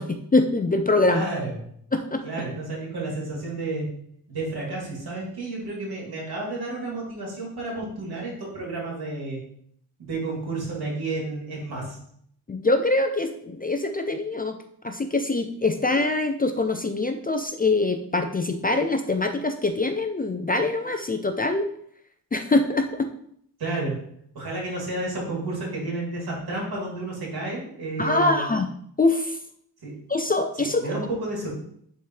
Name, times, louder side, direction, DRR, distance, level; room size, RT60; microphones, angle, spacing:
voice 1, 0.0-1.3 1.9-2.2 12.5-14.6 14.8-21.7 22.3-23.1 28.0-28.7 29.0-29.4 30.1-30.8, left 2 dB, 25° left, 6 dB, 0.4 m, -24 dB
voice 2, 1.1-1.5 2.2-4.0 4.3-9.4 10.0-12.0 23.6-24.0 24.3-28.5 29.8-29.9 30.6-31.5, right 2 dB, 75° right, -3 dB, 3.0 m, -31 dB
10.5 x 4.3 x 3.2 m, 0.68 s
wide cardioid pair, 165°, 38 cm